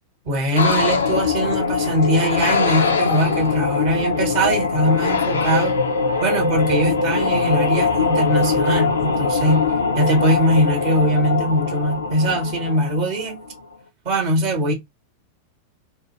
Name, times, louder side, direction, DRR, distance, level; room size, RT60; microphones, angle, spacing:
voice 1, 0.2-5.7 6.2-9.7 9.9-13.4 14.0-14.7, right 1 dB, 50° right, 1.2 m, -21 dB
sound 1, 0.6-13.5, left 4 dB, 70° left, 0.5 m, -22 dB
2.7 x 2.3 x 2.9 m
figure-of-eight pair, 90°, 0 cm